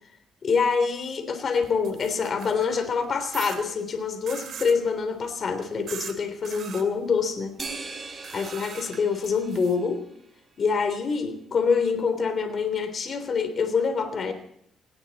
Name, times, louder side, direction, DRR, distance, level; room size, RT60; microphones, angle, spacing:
voice 1, 0.4-7.5 8.3-10.0 10.6-14.3, left 5 dB, 50° left, 8 dB, 3.4 m, -26 dB
sound 1, 1.6-2.7 3.3-3.6 4.3-4.8 5.9-6.1 6.4-6.8 8.2-9.8, right 8 dB, 65° right, 2.6 m, -40 dB
sound 2, 7.6-10.3, right 4 dB, 25° right, 5.0 m, -40 dB
18.5 x 18.5 x 4.2 m, 0.69 s
cardioid pair, 90°, 0 cm